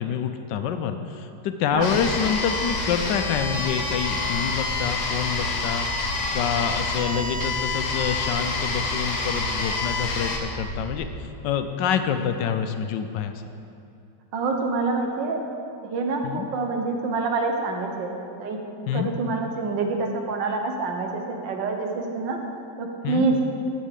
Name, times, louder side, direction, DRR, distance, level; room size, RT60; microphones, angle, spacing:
voice 1, 0.0-5.9 6.3-13.4 16.2-16.5 18.9-19.1 23.0-23.3, left 7 dB, 85° left, 8 dB, 1.3 m, -27 dB
sound 1, 1.7-11.2, right 1 dB, 50° right, 2.3 m, -35 dB
sound 2, 1.8-10.4, left 4 dB, 65° left, 1.6 m, -28 dB
voice 2, 14.3-15.4 15.8-18.1 18.4-18.6 18.9-22.4 22.8-23.4, right 3 dB, 85° right, 3 dB, 1.7 m, -26 dB
8.4 x 6.3 x 7.4 m, 2.7 s
omnidirectional pair, 1.9 m